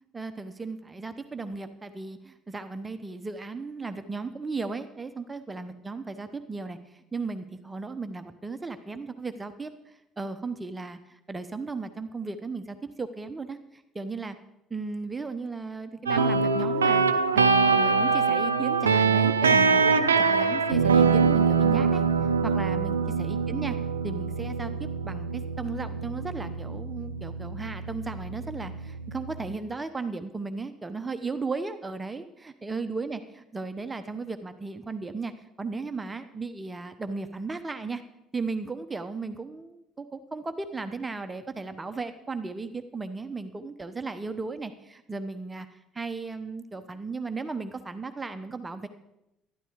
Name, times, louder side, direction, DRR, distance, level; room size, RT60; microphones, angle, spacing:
voice 1, 0.1-14.4 14.7-17.0 17.3-22.0 22.4-23.8 24.0-24.7 25.0-35.3 35.6-38.0 38.3-45.7 45.9-48.9, right 4 dB, 20° right, 9 dB, 0.9 m, -35 dB
sound 1, 16.1-29.5, right 5 dB, 85° right, 0.5 m, -24 dB
12.0 x 12.0 x 4.8 m, 0.89 s
figure-of-eight pair, 55°, 0 cm